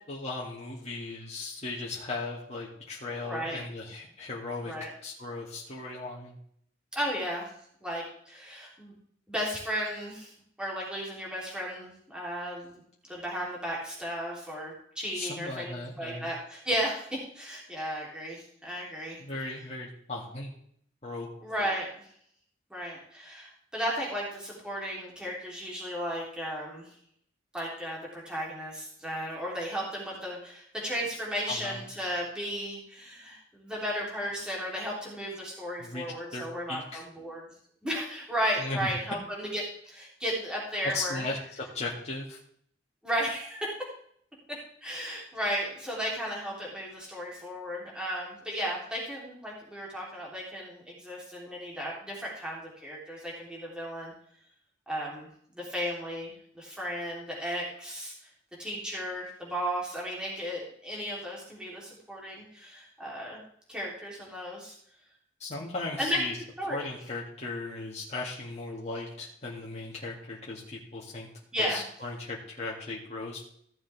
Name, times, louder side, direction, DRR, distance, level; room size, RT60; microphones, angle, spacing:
voice 1, 0.1-6.4 15.1-16.3 19.2-20.5 21.0-21.3 31.5-31.8 35.8-36.0 36.3-37.0 38.6-38.8 40.8-42.4 65.4-66.4 66.7-71.3 71.7-73.4, left 3 dB, 35° left, -5 dB, 2.3 m, -37 dB
voice 2, 3.2-3.6 4.6-4.9 6.9-7.5 7.8-9.0 9.3-10.3 10.6-12.8 13.1-17.0 17.3-19.2 21.4-21.9 22.7-26.9 27.5-37.4 37.8-41.3 43.0-43.7 44.5-54.1 54.9-55.3 55.5-58.1 58.6-63.4 63.7-64.7 66.0-66.2 66.6-66.8 71.5-71.8, equal, 5° right, -4 dB, 3.6 m, -34 dB
15.5 x 7.2 x 3.6 m, 0.64 s
head